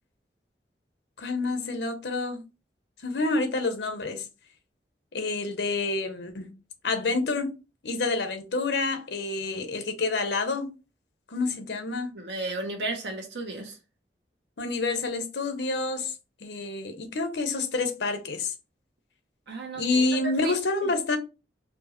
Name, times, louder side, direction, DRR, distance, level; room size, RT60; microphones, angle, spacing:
voice 1, 1.2-2.4 3.0-4.3 5.1-6.5 6.8-7.5 7.8-10.7 11.3-12.2 14.6-16.1 16.4-18.5 19.7-21.2, left 3 dB, 80° left, 0.8 m, -28 dB
voice 2, 12.1-13.8 19.5-20.6 20.8-20.9, right 2 dB, 85° right, 1.1 m, -34 dB
4.4 x 2.5 x 3.0 m
head